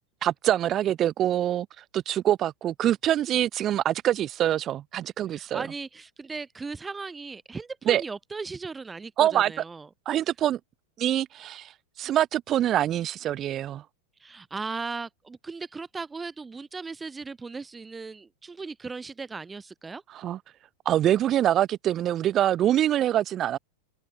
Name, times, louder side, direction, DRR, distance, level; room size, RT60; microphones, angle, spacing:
voice 1, 0.2-1.7 1.9-5.7 7.9-8.0 9.2-9.5 10.1-10.6 11.0-11.7 12.0-13.8 20.1-20.4 20.9-23.6, right 11 dB, 30° right, 0.4 m, -24 dB
voice 2, 5.3-9.9 14.2-20.0, right 4 dB, 15° right, 3.4 m, -37 dB
figure-of-eight pair, 90°, 0 cm